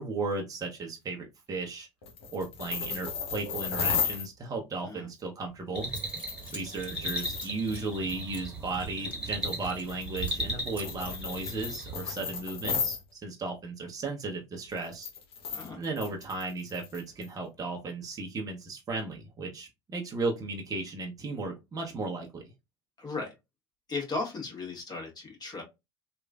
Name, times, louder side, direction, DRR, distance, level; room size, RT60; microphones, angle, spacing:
voice 1, 0.0-1.9 2.3-5.9 6.5-15.1 15.7-22.4, right 3 dB, 25° right, 1 dB, 0.7 m, -35 dB
sound 1, 2.0-4.3 5.9-7.8 8.1-8.2 9.4-13.0 14.7-17.3, left 6 dB, 80° left, 0.8 m, -35 dB
Zipper (clothing) / Coin (dropping), 5.5-5.6 5.8-10.0 10.2-10.5 10.8-12.5, equal, 10° left, 1.9 m, -49 dB
sound 2, 5.8-12.1, right 1 dB, 10° right, 1.4 m, -37 dB
voice 2, 15.5-15.8 23.0-23.3 23.9-25.6, left 3 dB, 30° left, 0 dB, 1.5 m, -36 dB
3.0 x 2.4 x 2.3 m, 0.23 s
hypercardioid pair, 70°, 13 cm